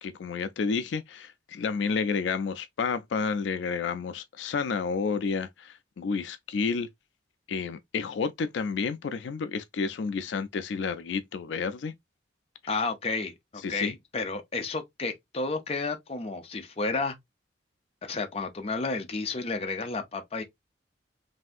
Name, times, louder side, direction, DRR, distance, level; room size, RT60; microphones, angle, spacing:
voice 1, 0.0-6.9 7.5-11.9 13.6-13.9, left 5 dB, 80° left, 0.4 m, -30 dB
voice 2, 12.7-17.1 18.0-20.4, left 3 dB, 35° left, 0.6 m, -31 dB
3.3 x 2.7 x 2.4 m
head